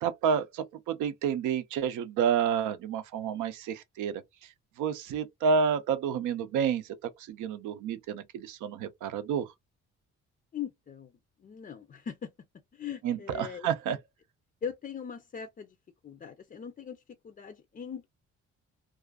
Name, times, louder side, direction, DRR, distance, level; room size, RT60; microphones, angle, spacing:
voice 1, 0.0-4.2 4.8-6.9 7.3-9.5 13.0-14.0, right 7 dB, 85° right, 0.5 m, -29 dB
voice 2, 10.5-12.3 12.7-13.7 14.6-15.8 16.0-18.1, left 7 dB, 30° left, 0.4 m, -40 dB
2.4 x 2.4 x 2.2 m
cardioid pair, 90°, 30 cm